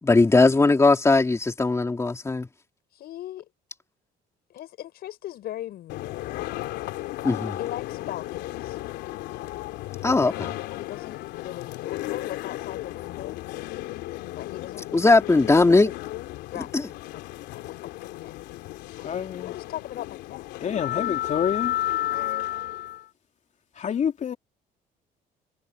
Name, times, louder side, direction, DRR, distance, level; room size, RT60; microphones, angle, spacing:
voice 1, 0.0-2.5 7.2-7.6 10.0-10.5 14.9-15.9 16.5-16.8, left 3 dB, 15° left, 3.0 m, -19 dB
voice 2, 2.9-3.5 4.5-6.5 7.6-8.8 10.0-10.3 10.8-13.4 14.3-15.1 16.5-17.2 17.5-17.9 18.2-18.4 19.4-20.4 22.1-22.5, left 13 dB, 70° left, 6.2 m, -39 dB
sound 1, 5.9-23.0, left 15 dB, 90° left, 3.0 m, -33 dB
voice 3, 19.0-19.5 20.6-21.7 23.8-24.4, left 8 dB, 45° left, 3.3 m, -27 dB
cardioid pair, 110°, 17 cm